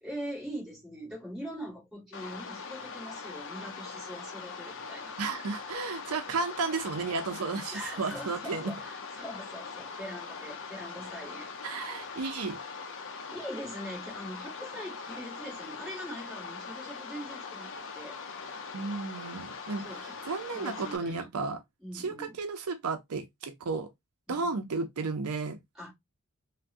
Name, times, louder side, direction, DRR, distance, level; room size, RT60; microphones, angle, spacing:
voice 1, 0.0-5.1 7.7-11.5 13.0-18.2 19.8-20.2 20.5-21.3 21.8-22.4 24.3-24.6 25.8-25.9, equal, ahead, 1.8 m, -42 dB
sound 1, 2.1-21.0, left 5 dB, 60° left, 0.6 m, -42 dB
voice 2, 5.2-8.7 11.6-12.6 18.7-21.6 21.9-23.9 24.3-25.6, right 4 dB, 75° right, 0.5 m, -33 dB
3.4 x 2.2 x 2.5 m
head